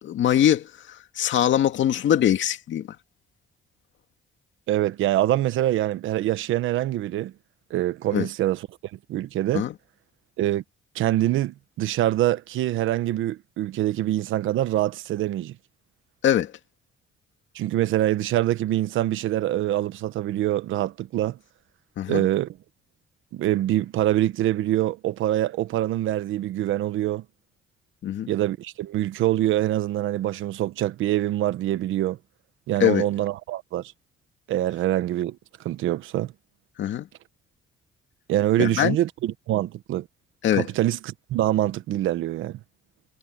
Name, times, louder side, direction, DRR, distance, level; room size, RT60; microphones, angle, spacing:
voice 1, 0.0-2.9 8.1-8.3 9.5-9.7 16.2-16.5 22.0-22.3 28.0-28.3 32.8-33.1 36.8-37.1 38.6-39.0 40.4-40.7, left 10 dB, 70° left, 2.3 m, -22 dB
voice 2, 4.7-7.3 7.7-8.6 9.1-9.7 10.4-10.6 10.9-15.5 17.5-21.4 22.1-22.5 23.3-27.2 28.3-32.2 32.7-33.8 34.5-35.4 35.6-36.3 38.3-40.1 40.5-42.6, right 14 dB, 85° right, 1.1 m, -24 dB
cardioid pair, 90°, 20 cm